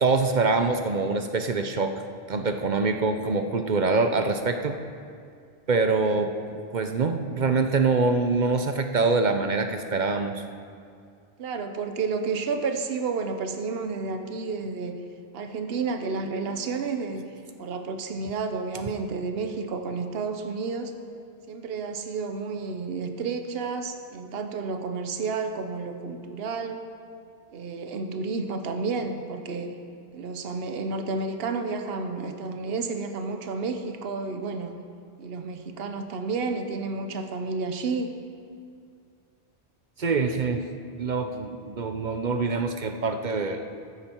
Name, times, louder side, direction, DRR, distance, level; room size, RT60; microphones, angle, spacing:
voice 1, 0.0-1.9 2.3-4.7 5.7-6.3 6.7-10.4 40.0-40.7 41.0-43.6, right 4 dB, 50° right, 6 dB, 0.8 m, -24 dB
voice 2, 11.4-15.0 15.3-17.3 17.6-21.0 21.5-26.9 27.5-29.7 30.1-34.8 35.2-38.1, right 4 dB, 70° right, 6 dB, 1.1 m, -31 dB
14.0 x 10.0 x 4.5 m, 2.3 s
omnidirectional pair, 1.1 m